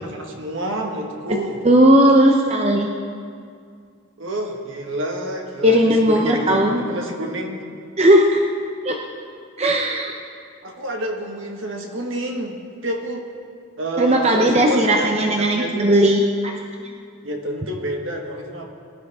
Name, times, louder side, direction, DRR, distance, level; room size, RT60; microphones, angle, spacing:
voice 1, 0.0-1.6 4.2-7.6 10.6-13.3 13.8-16.1 17.2-18.7, right 1 dB, 65° right, 2 dB, 1.6 m, -28 dB
voice 2, 1.6-2.9 5.6-6.8 8.0-8.4 8.8-9.0 9.6-10.1 14.0-16.2, right 1 dB, 30° right, 1 dB, 0.8 m, -16 dB
22.0 x 11.0 x 3.6 m, 2.2 s
head